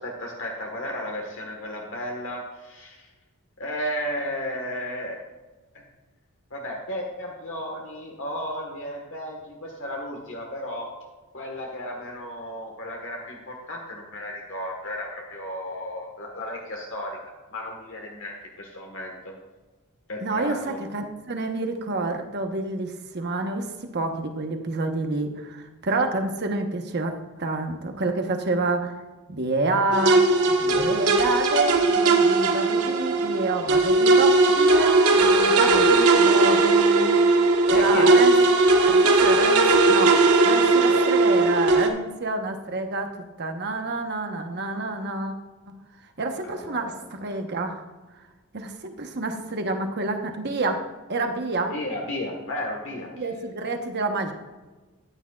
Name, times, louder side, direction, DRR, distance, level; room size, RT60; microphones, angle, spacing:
voice 1, 0.0-3.1 3.6-5.2 6.5-10.9 11.3-17.2 17.5-18.3 18.6-19.3 20.1-20.8 35.6-36.0 37.7-38.2 40.8-41.1 46.4-47.0 51.7-53.1, left 1 dB, 60° left, 0 dB, 1.4 m, -34 dB
voice 2, 20.2-28.9 29.3-37.2 37.6-38.4 38.9-43.1 43.4-45.3 45.7-45.8 46.2-47.8 48.5-50.8 51.1-51.7 53.1-54.3, right 2 dB, 50° right, 5 dB, 1.0 m, -28 dB
sound 1, 29.9-41.9, right 3 dB, 80° right, 1.3 m, -18 dB
13.5 x 9.9 x 2.4 m, 1.2 s
head